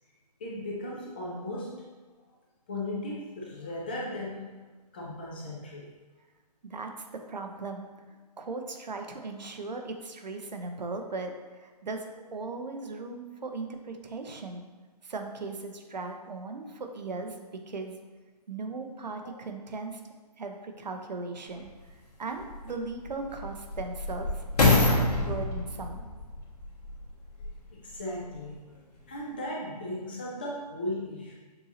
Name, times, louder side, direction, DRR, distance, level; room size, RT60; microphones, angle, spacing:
voice 1, 0.4-1.8 2.7-4.6 4.9-5.9 19.2-19.3 27.7-28.7 29.1-31.3, left 1 dB, 15° left, -4 dB, 0.3 m, -36 dB
voice 2, 6.6-7.9 8.4-14.7 15.0-18.0 18.5-20.0 20.4-21.7 22.2-26.0, right 3 dB, 90° right, 4 dB, 0.7 m, -38 dB
sound 1, 21.6-21.7 22.4-27.7 28.3-28.4, left 2 dB, 65° left, 1.4 m, -27 dB
6.8 x 2.7 x 2.8 m, 1.3 s
hypercardioid pair, 155°, 21 cm